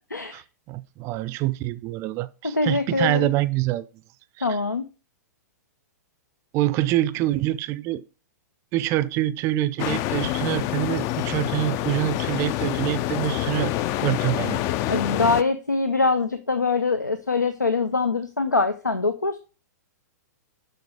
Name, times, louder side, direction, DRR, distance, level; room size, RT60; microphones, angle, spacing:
voice 1, 0.1-0.4 2.4-3.3 4.4-4.9 14.9-19.4, left 3 dB, 85° left, 0.7 m, -23 dB
voice 2, 0.7-3.9 4.4-4.5 6.5-8.0 8.7-13.7 14.0-14.6, right 15 dB, 30° right, 0.5 m, -25 dB
sound 1, 9.8-15.4, left 14 dB, 30° left, 0.4 m, -27 dB
6.8 x 6.4 x 4.9 m
figure-of-eight pair, 105°, 9 cm